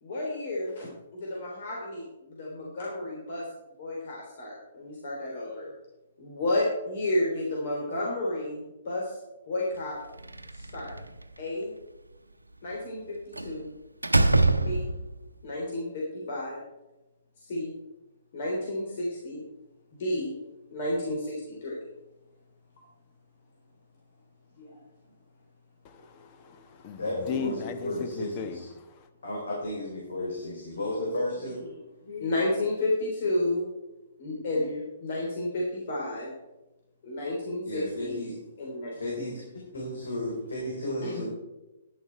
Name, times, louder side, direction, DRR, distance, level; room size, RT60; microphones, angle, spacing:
voice 1, 0.0-0.9 1.1-3.5 3.8-5.7 6.2-9.2 9.5-10.0 10.5-10.9 11.4-11.7 12.6-13.7 14.6-14.9 15.4-16.6 17.4-17.7 18.3-19.4 19.9-20.3 20.7-21.8 24.6-24.8 32.0-33.7 34.2-36.3 37.0-38.2 38.6-39.0 41.0-41.2, left 1 dB, 50° left, -3 dB, 3.3 m, -31 dB
Slam, 10.2-11.2 13.4-13.6 14.0-15.2, right 2 dB, 85° right, 0.7 m, -24 dB
voice 2, 25.8-29.1, left 6 dB, 30° left, 8 dB, 1.2 m, -37 dB
voice 3, 27.0-28.7 29.2-31.6 37.6-38.4 39.0-41.2, left 1 dB, 70° left, -3 dB, 3.8 m, -33 dB
11.0 x 10.5 x 4.5 m, 1.0 s
figure-of-eight pair, 125°, 0 cm